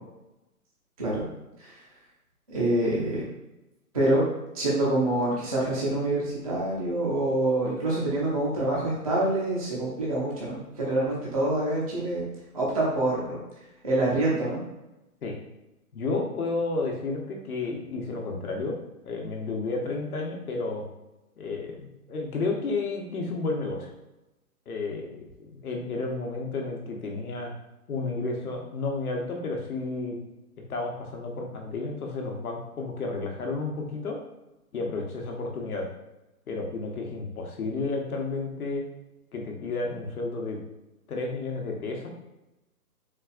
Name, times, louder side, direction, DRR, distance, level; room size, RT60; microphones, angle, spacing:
voice 1, 2.5-3.2 3.9-4.2 4.5-12.2 12.5-13.4 13.8-14.6, right 1 dB, 25° right, -6 dB, 0.4 m, -26 dB
voice 2, 15.9-18.8 19.0-20.8 21.4-23.9 24.7-27.5 27.9-30.2 30.7-34.2 34.7-35.9 36.5-38.8 39.3-40.6 41.1-42.1, left 3 dB, 70° left, 1 dB, 0.9 m, -31 dB
4.0 x 2.3 x 2.4 m, 0.98 s
hypercardioid pair, 150°, 46 cm